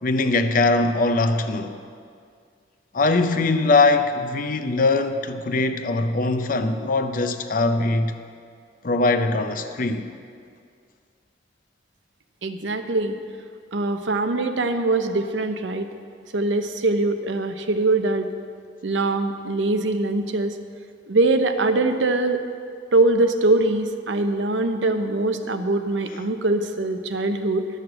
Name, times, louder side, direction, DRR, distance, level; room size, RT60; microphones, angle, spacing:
voice 1, 0.0-1.8 2.9-8.1 8.8-10.1, left 3 dB, 45° left, 0.6 m, -21 dB
voice 2, 12.4-13.2 13.7-15.9 16.3-18.3 18.8-20.6 21.1-22.4 22.9-27.7, right 2 dB, 80° right, 0.7 m, -22 dB
11.0 x 6.5 x 7.7 m
head